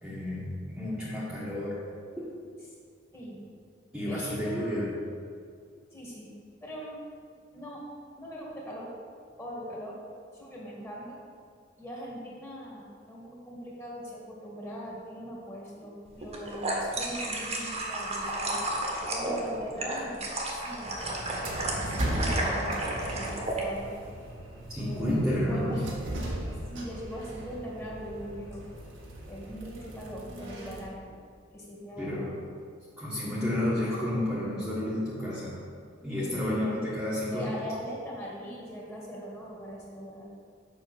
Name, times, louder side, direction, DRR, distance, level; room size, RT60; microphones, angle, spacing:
voice 1, 0.0-1.8 3.9-4.9 24.7-25.8 32.0-32.3 33.0-35.6 36.0-37.7, left 1 dB, 5° right, -9 dB, 1.5 m, -30 dB
voice 2, 3.1-3.4 4.1-4.7 5.9-6.3 6.6-7.0 7.5-7.9 8.2-8.9 9.4-10.0 10.4-11.2 11.8-18.6 19.1-20.2 20.5-21.5 21.7-23.9 24.8-25.9 26.7-28.6 29.3-31.1 31.5-32.5 36.0-36.9 37.3-40.3, equal, 15° left, -4 dB, 2.0 m, -41 dB
sound 1, 16.2-23.6, right 1 dB, 35° right, 1.5 m, -32 dB
sound 2, 20.8-30.9, right 1 dB, 80° right, 1.6 m, -37 dB
7.6 x 6.1 x 6.3 m, 2.2 s
head